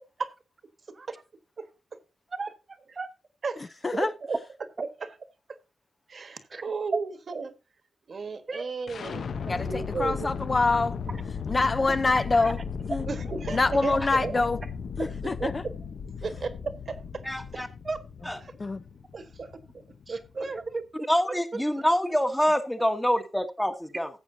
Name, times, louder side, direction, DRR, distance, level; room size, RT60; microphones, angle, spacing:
voice 1, 2.3-3.1 6.5-6.6 8.5-8.6 11.8-11.9 12.3-12.5 17.8-18.0 20.1-20.8 21.2-21.3, right 3 dB, 35° right, 1.1 m, -35 dB
voice 2, 3.4-4.4 4.8-5.1 6.1-7.5 8.1-10.3 13.1-14.4 15.0-15.7 16.2-17.2 17.5-17.6 19.1-19.5 19.7-19.8 20.1-20.5, right 4 dB, 50° right, 1.4 m, -34 dB
sound 1, 8.9-20.7, left 6 dB, 70° left, 0.9 m, -36 dB
voice 3, 9.5-10.9 11.5-12.6 12.9-13.0 13.5-14.6 15.0-15.6 18.6-18.8, left 3 dB, 30° left, 0.6 m, -25 dB
voice 4, 17.2-17.7 18.3-18.4 21.1-24.1, equal, 5° left, 1.2 m, -26 dB
14.5 x 8.0 x 2.7 m
wide cardioid pair, 120°, 0 cm